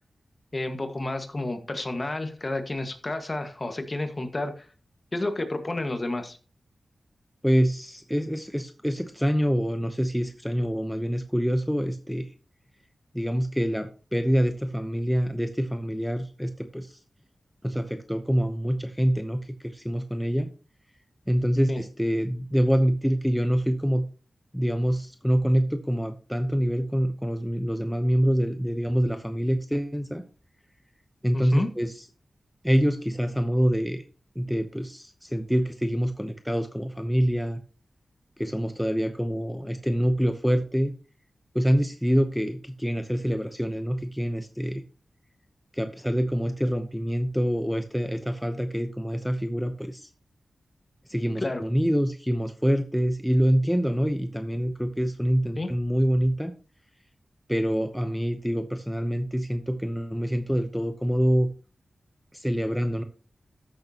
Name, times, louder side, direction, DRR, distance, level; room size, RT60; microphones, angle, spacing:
voice 1, 0.5-4.7 5.1-6.4 21.7-21.8 31.3-31.7 51.4-51.6 55.6-55.7, left 2 dB, 35° left, 7 dB, 1.6 m, -30 dB
voice 2, 7.4-12.3 13.1-17.0 17.6-20.5 21.3-24.0 24.5-30.2 31.2-32.0 32.6-34.0 34.4-37.6 38.4-40.9 41.5-44.8 45.7-50.1 51.1-56.5 57.5-61.5 62.3-63.0, equal, ahead, 7 dB, 0.8 m, -26 dB
13.5 x 6.7 x 2.9 m, 0.35 s
cardioid pair, 65°, 0 cm